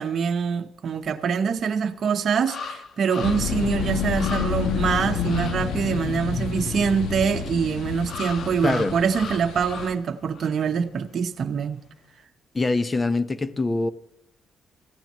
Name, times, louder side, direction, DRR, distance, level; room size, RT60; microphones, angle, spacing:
voice 1, 0.0-11.8, right 6 dB, 55° right, 0.9 m, -24 dB
sound 1, 1.6-1.7 2.5-3.6 3.9-4.0 4.2-4.8 5.2-5.6 8.1-10.1 10.3-10.6, left 4 dB, 60° left, 1.1 m, -37 dB
sound 2, 3.2-9.9, left 7 dB, 75° left, 1.3 m, -29 dB
voice 2, 8.6-9.0 12.5-13.9, left 3 dB, 25° left, 0.9 m, -24 dB
25.0 x 15.0 x 3.1 m
cardioid pair, 90°, 0 cm